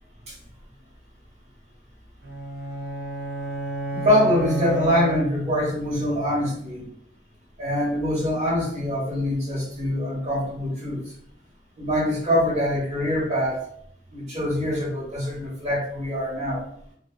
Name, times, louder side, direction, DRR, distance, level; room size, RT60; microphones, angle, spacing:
sound 1, 2.2-5.8, right 2 dB, 60° right, 0.6 m, -31 dB
voice 1, 4.0-6.8 7.6-11.0 11.8-13.6 14.1-16.6, left 1 dB, 40° right, -6 dB, 1.3 m, -24 dB
2.5 x 2.4 x 2.4 m, 0.65 s
head